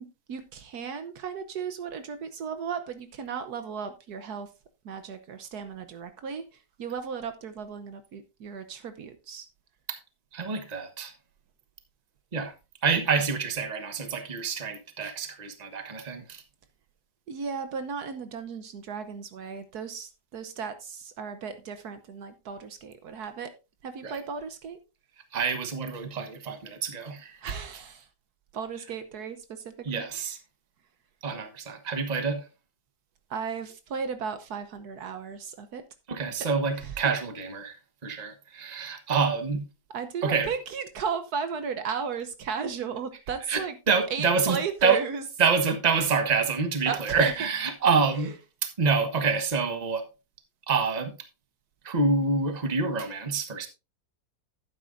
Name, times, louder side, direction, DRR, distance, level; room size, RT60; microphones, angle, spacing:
voice 1, 0.0-4.5 4.8-9.5 17.3-23.5 23.8-24.8 27.4-28.1 28.5-30.3 33.3-35.8 36.8-36.9 39.9-43.8 44.1-45.2 46.9-47.3, right 6 dB, 70° right, 1.4 m, -35 dB
voice 2, 10.3-11.1 12.3-12.5 12.8-16.4 24.0-24.1 25.3-27.4 29.8-30.4 31.2-32.5 36.1-39.6 40.2-40.5 43.5-45.0 45.4-48.3 48.6-50.0 50.7-51.1 51.8-53.7, right 5 dB, 25° right, 1.2 m, -27 dB
11.5 x 9.3 x 2.6 m
omnidirectional pair, 1.8 m